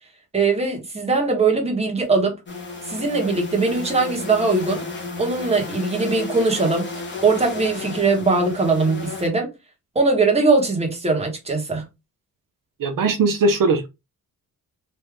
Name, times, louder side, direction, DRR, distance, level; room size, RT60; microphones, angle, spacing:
voice 1, 0.3-2.4 2.9-4.8 5.2-6.9 7.2-9.5 9.9-11.9, right 3 dB, 20° right, 1.1 m, -20 dB
sound 1, 2.5-9.3, left 3 dB, 30° left, 1.2 m, -33 dB
voice 2, 12.8-13.9, right 3 dB, 65° right, 0.7 m, -19 dB
3.3 x 2.8 x 3.5 m
wide cardioid pair, 150°, 35 cm